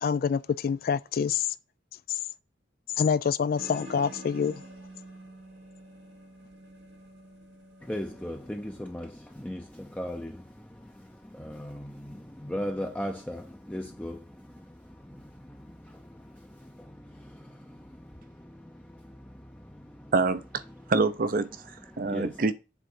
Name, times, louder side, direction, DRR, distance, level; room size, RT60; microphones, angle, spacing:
voice 1, 0.0-1.5 2.1-2.2 3.0-4.5, left 6 dB, 55° left, 0.3 m, -26 dB
sound 1, 3.6-8.8, right 1 dB, 80° right, 2.7 m, -47 dB
voice 2, 7.8-20.1 20.7-20.9 21.8-22.4, equal, 10° left, 0.6 m, -39 dB
voice 3, 20.1-20.6 20.9-21.6 22.0-22.5, right 3 dB, 50° right, 0.6 m, -25 dB
7.9 x 3.8 x 6.0 m
head